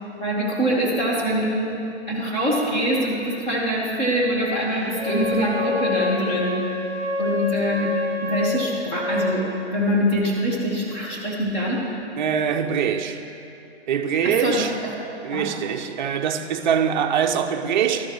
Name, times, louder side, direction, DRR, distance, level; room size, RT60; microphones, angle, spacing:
voice 1, 0.2-1.7 2.1-6.6 7.2-7.9 8.2-9.5 9.7-11.9 14.2-14.9 15.3-15.5, equal, 15° left, 1.4 m, -24 dB
Wind instrument woodwind instrument, 4.9-9.4, left 4 dB, 85° left, 2.2 m, -27 dB
voice 2, 12.2-13.2 13.9-14.7 15.2-18.1, right 8 dB, 45° right, 0.6 m, -23 dB
12.5 x 10.5 x 3.1 m
hypercardioid pair, 150°, 33 cm